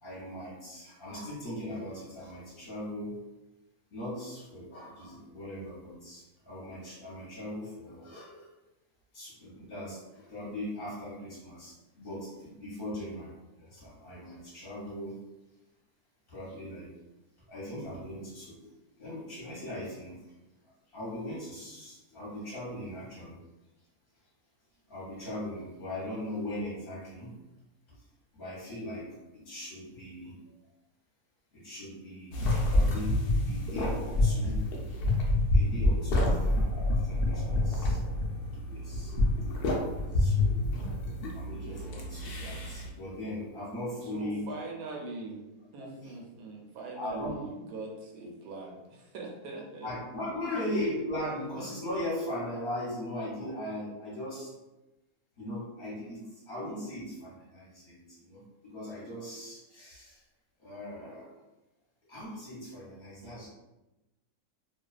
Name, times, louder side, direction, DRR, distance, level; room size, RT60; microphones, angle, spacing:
voice 1, 0.0-3.2 3.9-8.5 9.1-15.2 16.3-16.9 17.5-20.2 20.9-23.4 24.9-27.4 27.9-28.0 28.3-30.4 31.5-32.4 32.7-34.7 35.5-38.0 38.5-39.1 39.5-39.6 40.1-41.1 41.3-44.5 45.8-46.1 47.0-47.3 49.8-54.5 55.4-60.2 60.6-61.3 62.1-63.5, left 1 dB, 45° left, -8 dB, 0.8 m, -39 dB
sound 1, 32.3-42.9, left 1 dB, 85° left, 0.5 m, -28 dB
voice 2, 44.0-45.4 45.7-49.9, right 3 dB, 85° right, -1 dB, 1.1 m, -41 dB
2.5 x 2.2 x 2.3 m, 1.0 s
omnidirectional pair, 1.5 m